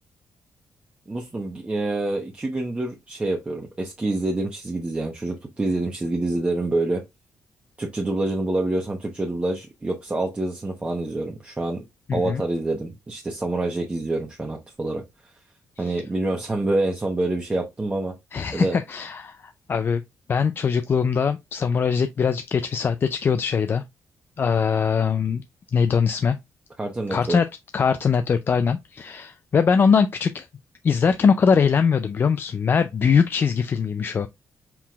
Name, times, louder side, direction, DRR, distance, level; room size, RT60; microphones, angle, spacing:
voice 1, 1.1-7.0 7.8-11.8 12.1-15.0 15.8-18.1 18.5-18.8 26.8-27.4, right 2 dB, 20° right, 0.9 m, -26 dB
voice 2, 12.1-12.4 15.8-16.0 18.3-20.0 20.3-23.8 24.4-25.4 25.7-26.4 27.1-27.5 27.7-30.5 30.8-34.3, left 6 dB, 45° left, 0.3 m, -21 dB
4.6 x 3.7 x 2.3 m
cardioid pair, 95°, 5 cm